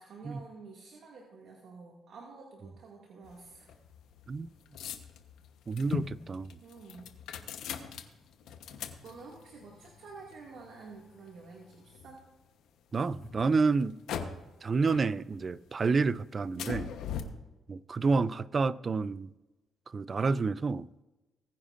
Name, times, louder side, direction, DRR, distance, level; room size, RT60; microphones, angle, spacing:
voice 1, 0.0-3.7 6.6-7.1 9.0-12.2 17.1-17.3, right 4 dB, 70° right, 2.2 m, -50 dB
car start ignition, 3.2-12.4 13.0-14.6 14.9-15.7 16.0-17.2, left 8 dB, 80° left, 1.0 m, -42 dB
voice 2, 5.7-6.5 12.9-14.0 14.6-16.9 17.7-19.3 19.9-20.9, right 4 dB, 35° right, 0.4 m, -29 dB
20.0 x 9.9 x 2.6 m
cardioid pair, 90°, 0 cm